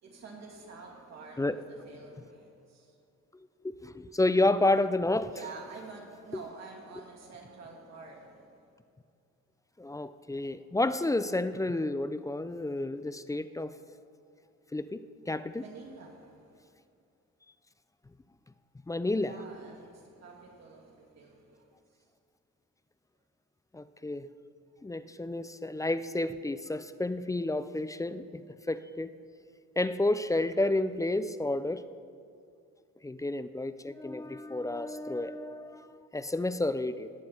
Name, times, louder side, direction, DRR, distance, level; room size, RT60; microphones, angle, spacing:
voice 1, 0.0-2.9 5.3-8.7 15.6-16.6 19.2-21.8, right 4 dB, 60° right, -1 dB, 2.6 m, -48 dB
voice 2, 3.8-5.4 9.8-13.8 14.7-15.6 18.9-19.4 23.7-24.3 24.8-28.4 28.7-29.1 29.8-31.8 33.0-37.1, left 2 dB, 10° left, 13 dB, 0.4 m, -30 dB
18.5 x 7.7 x 4.4 m, 2.5 s
cardioid pair, 90°, 30 cm